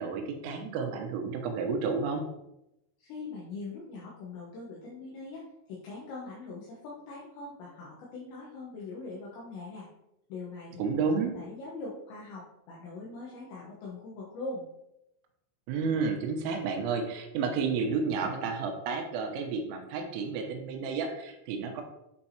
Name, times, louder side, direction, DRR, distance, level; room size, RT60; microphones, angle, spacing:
voice 1, 0.0-2.2 10.8-11.3 15.7-21.8, right 5 dB, 85° right, 3 dB, 3.4 m, -31 dB
voice 2, 3.0-5.4 5.7-9.9 10.3-11.0 11.3-14.7, left 3 dB, 75° left, -5 dB, 3.0 m, -42 dB
9.7 x 4.6 x 2.9 m, 0.86 s
omnidirectional pair, 6.0 m